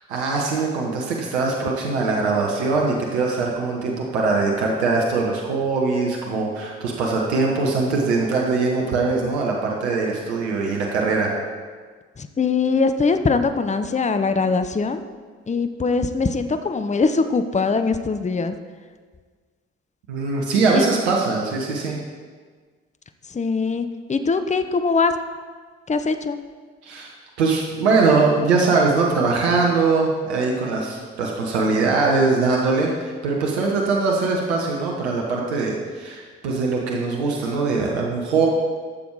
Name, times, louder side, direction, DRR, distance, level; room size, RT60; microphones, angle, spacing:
voice 1, 0.1-11.3 20.1-22.0 26.8-27.1 27.4-38.5, right 4 dB, 85° right, -1 dB, 1.1 m, -22 dB
voice 2, 12.2-15.0 15.5-18.5 20.7-20.9 23.3-25.1 25.9-26.4, left 4 dB, 20° left, 9 dB, 0.8 m, -22 dB
12.0 x 7.1 x 4.8 m, 1.5 s
hypercardioid pair, 45°, 32 cm